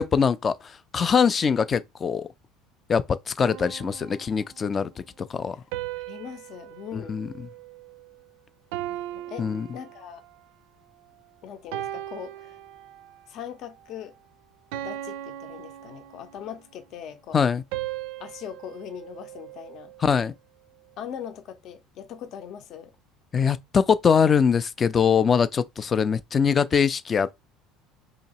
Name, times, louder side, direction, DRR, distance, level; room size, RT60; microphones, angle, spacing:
voice 1, 0.0-2.3 2.9-5.6 6.9-7.3 9.4-9.7 17.3-17.6 20.0-20.3 23.3-27.3, left 6 dB, 25° left, 0.4 m, -23 dB
sound 1, 3.4-4.7 5.7-8.2 8.7-10.4 11.0-11.2 11.7-13.3 13.7-14.0 14.7-16.6 17.7-20.1, right 14 dB, 85° right, 0.4 m, -38 dB
voice 2, 6.0-7.2 8.9-9.5 9.7-10.2 11.4-12.6 13.3-14.1 14.8-17.4 18.2-19.9 21.0-23.0, left 9 dB, 55° left, 0.7 m, -40 dB
2.9 x 2.8 x 4.1 m
cardioid pair, 135°, 0 cm